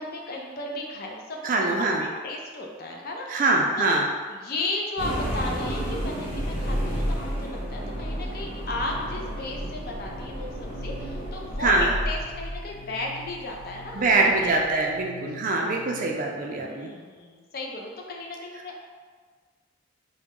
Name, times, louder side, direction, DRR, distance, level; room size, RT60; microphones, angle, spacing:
voice 1, 0.0-3.4 3.8-4.0 4.3-14.9 15.6-16.2 16.6-18.8, left 2 dB, 50° left, 0 dB, 0.5 m, -35 dB
voice 2, 1.4-2.0 3.3-4.1 11.6-11.9 13.9-16.9, right 3 dB, 40° right, 0 dB, 0.4 m, -23 dB
sound 1, 5.0-15.0, equal, 30° left, 1.0 m, -32 dB
sound 2, 8.8-16.4, left 2 dB, 5° left, 0.8 m, -47 dB
3.8 x 2.1 x 3.6 m, 1.5 s
head